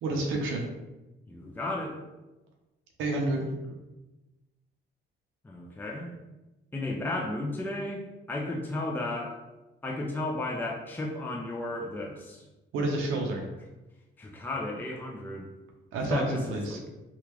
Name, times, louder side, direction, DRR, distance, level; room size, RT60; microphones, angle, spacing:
voice 1, 0.0-0.7 3.0-3.5 12.7-13.5 15.9-16.8, right 2 dB, 90° right, 0 dB, 0.6 m, -29 dB
voice 2, 1.3-2.0 3.1-3.3 5.4-6.1 6.7-9.4 9.8-12.4 14.2-15.5 16.1-16.9, left 2 dB, 10° left, -2 dB, 0.5 m, -34 dB
3.4 x 2.4 x 3.0 m, 1.1 s
cardioid pair, 90°, 20 cm